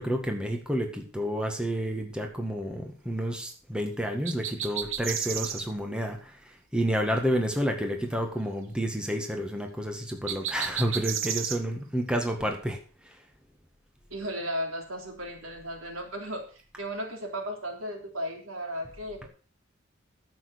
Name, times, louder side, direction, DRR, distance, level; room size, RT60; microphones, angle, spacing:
voice 1, 0.0-13.2, equal, 5° right, 3 dB, 1.7 m, -30 dB
sound 1, 4.3-5.6 10.3-11.6, right 9 dB, 75° right, 1.0 m, -32 dB
voice 2, 14.1-19.3, equal, 90° right, 2 dB, 3.4 m, -35 dB
11.0 x 7.7 x 6.3 m, 0.40 s
head